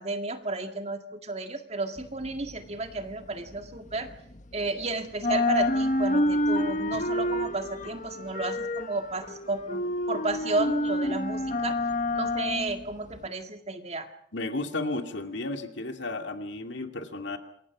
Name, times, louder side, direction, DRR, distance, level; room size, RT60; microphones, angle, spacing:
voice 1, 0.0-4.1 4.5-11.8 12.1-14.1, right 2 dB, 30° right, 6 dB, 2.0 m, -32 dB
sound 1, 2.0-4.8 5.1-13.3, left 1 dB, 40° left, 1.4 m, -29 dB
voice 2, 14.3-17.4, left 2 dB, 60° left, 6 dB, 2.5 m, -33 dB
27.5 x 22.5 x 6.2 m, 0.66 s
head